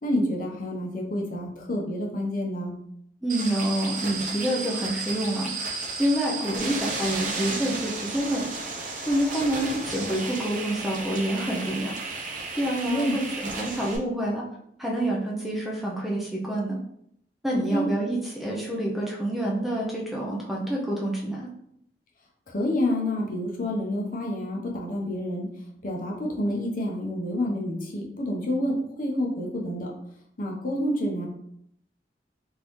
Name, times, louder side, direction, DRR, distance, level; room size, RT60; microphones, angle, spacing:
voice 1, 0.0-2.7 12.8-13.2 17.5-17.9 22.5-25.5 25.8-29.9 30.4-31.3, left 1 dB, 50° left, 0 dB, 0.7 m, -28 dB
voice 2, 3.2-5.7 6.0-8.5 9.1-12.3 12.6-14.4 14.8-16.8 17.4-21.5, right 1 dB, ahead, -3 dB, 0.5 m, -27 dB
sound 1, 3.3-14.0, right 3 dB, 50° right, 0.7 m, -33 dB
3.8 x 2.6 x 3.1 m, 0.74 s
head